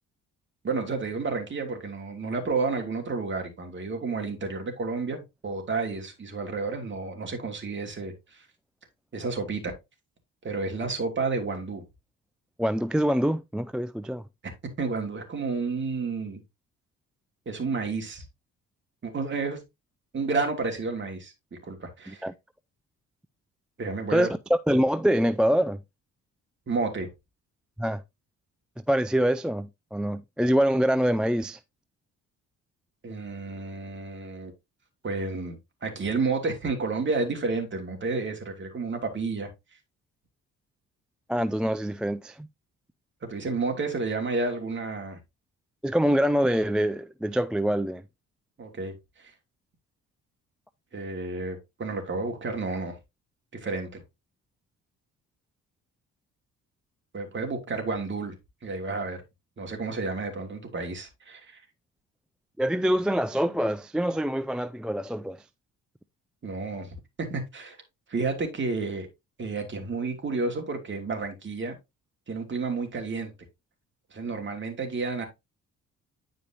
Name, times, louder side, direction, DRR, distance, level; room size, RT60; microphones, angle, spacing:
voice 1, 0.6-8.5 9.1-9.7 10.4-11.8 14.8-16.4 17.5-18.2 19.0-19.6 20.1-21.3 21.6-22.2 23.8-24.3 26.7-27.1 33.0-34.5 35.0-39.5 43.2-45.2 48.6-48.9 49.2-49.3 50.9-53.0 53.5-54.0 57.1-58.4 58.6-59.2 59.6-61.6 66.4-66.9 67.3-67.8 68.1-69.1 69.4-71.8 72.3-73.3 74.1-75.3, right 3 dB, 40° right, 2.7 m, -31 dB
voice 2, 12.6-14.2 22.1-22.3 24.1-25.8 27.8-28.0 28.9-31.6 41.3-42.5 45.8-48.0 62.6-65.4, equal, 5° right, 0.3 m, -25 dB
9.7 x 5.1 x 2.9 m
cardioid pair, 90°, 30 cm